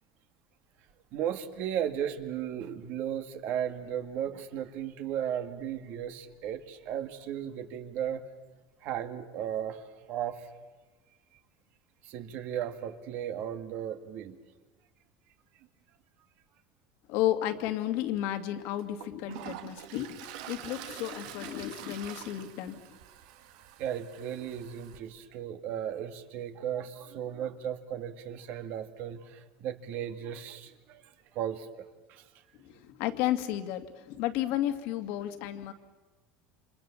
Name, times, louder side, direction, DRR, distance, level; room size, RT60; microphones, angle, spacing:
voice 1, 1.1-8.2 8.8-10.5 12.0-14.4 23.8-31.0 31.3-32.2, right 9 dB, 55° right, 8 dB, 2.1 m, -35 dB
voice 2, 17.1-23.0 32.5-35.7, left 13 dB, 65° left, 7 dB, 2.3 m, -32 dB
Toilet flush, 18.1-18.2 18.8-25.0, right 11 dB, 80° right, 1.7 m, -46 dB
29.0 x 26.5 x 7.3 m, 1.2 s
supercardioid pair, 140°, 4 cm